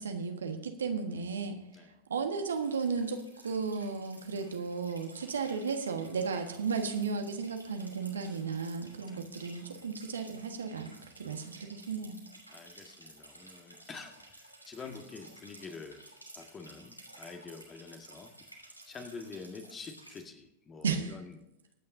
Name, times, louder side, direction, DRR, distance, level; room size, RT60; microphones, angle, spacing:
voice 1, 0.0-1.6 2.1-3.2 3.4-12.2 20.8-21.2, right 5 dB, 70° right, 5 dB, 1.5 m, -34 dB
sound 1, 2.5-20.2, right 1 dB, 90° right, 2.8 m, -54 dB
voice 2, 12.5-16.0 16.3-18.3 18.9-21.4, left 4 dB, 20° left, 5 dB, 1.8 m, -47 dB
23.5 x 9.5 x 2.7 m, 0.88 s
figure-of-eight pair, 90°, 0 cm